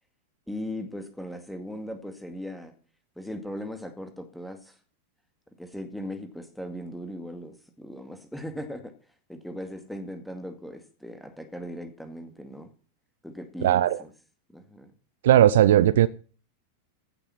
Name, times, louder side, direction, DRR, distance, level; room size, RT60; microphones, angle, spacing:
voice 1, 0.5-2.7 3.2-4.7 5.6-8.9 9.3-12.7 13.2-14.1 14.5-14.9, equal, ahead, 2.1 m, -38 dB
voice 2, 13.6-14.0 15.2-16.1, right 12 dB, 60° right, 0.5 m, -18 dB
15.5 x 6.9 x 5.8 m
figure-of-eight pair, 90°, 0 cm